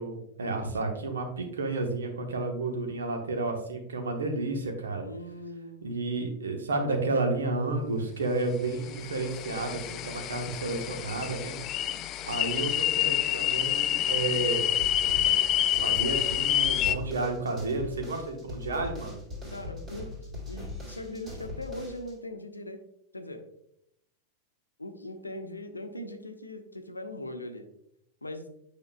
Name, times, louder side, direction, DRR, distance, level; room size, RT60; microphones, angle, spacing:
voice 1, 0.0-5.0 5.8-11.6 12.2-14.8 15.8-19.2, right 3 dB, 70° right, 4 dB, 1.1 m, -31 dB
voice 2, 5.0-6.0 19.5-20.2 20.5-22.8 23.1-23.4 24.8-27.7 28.2-28.5, left 1 dB, 80° left, 7 dB, 0.7 m, -40 dB
sound 1, 8.8-16.9, left 12 dB, 35° left, 0.3 m, -28 dB
sound 2, 14.8-22.1, left 2 dB, 25° right, 2.3 m, -40 dB
8.6 x 5.1 x 2.2 m, 0.76 s
figure-of-eight pair, 90°, 0 cm